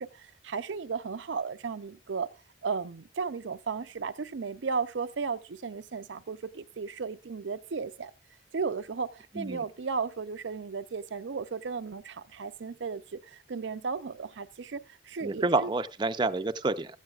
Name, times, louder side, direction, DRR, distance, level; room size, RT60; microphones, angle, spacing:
voice 1, 0.0-2.3 2.6-8.1 8.5-15.7, right 5 dB, 85° right, 0.5 m, -35 dB
voice 2, 15.2-17.0, right 3 dB, 25° right, 0.5 m, -29 dB
15.5 x 13.0 x 2.4 m
head